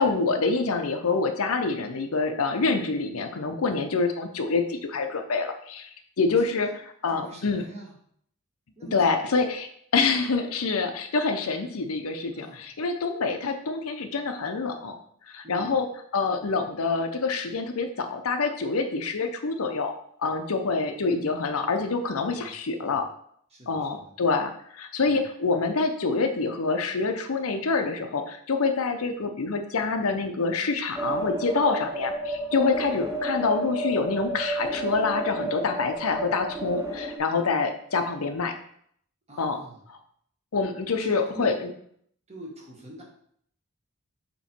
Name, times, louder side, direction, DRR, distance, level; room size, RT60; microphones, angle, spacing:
voice 1, 0.0-5.9 6.2-6.7 7.0-7.6 8.9-9.7 9.9-15.0 15.3-15.9 16.1-19.9 20.2-23.1 23.7-38.5 39.4-39.6 39.9-40.0 40.5-41.7, left 4 dB, 75° left, 6 dB, 0.7 m, -26 dB
voice 2, 7.1-8.0 8.8-9.3 12.3-12.6 15.4-15.7 22.4-23.1 23.5-24.1 25.0-25.3 32.9-33.1 39.3-39.8 41.0-41.6 42.3-43.0, right 1 dB, 30° right, -2 dB, 1.5 m, -44 dB
sound 1, 30.9-37.2, right 1 dB, 10° right, 0.6 m, -31 dB
7.2 x 3.0 x 4.3 m, 0.66 s
head